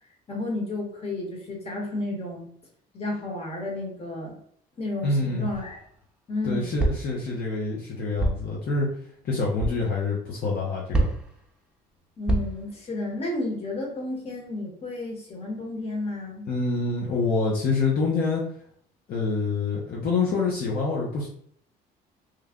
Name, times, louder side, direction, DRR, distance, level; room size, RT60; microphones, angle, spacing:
voice 1, 0.3-2.5 2.9-4.4 4.8-5.8 6.3-6.7 12.2-16.5, left 2 dB, 35° left, 0 dB, 1.4 m, -32 dB
voice 2, 5.0-5.5 6.4-8.9 9.2-11.1 16.5-18.4 19.1-21.3, left 3 dB, 60° left, -3 dB, 0.8 m, -26 dB
sound 1, 5.5-5.9 6.8-7.2 8.2-8.5 9.6-9.8 10.9-11.4 12.3-12.7, right 2 dB, 5° right, 0.7 m, -26 dB
3.2 x 2.2 x 3.6 m, 0.62 s
cardioid pair, 110°, 17 cm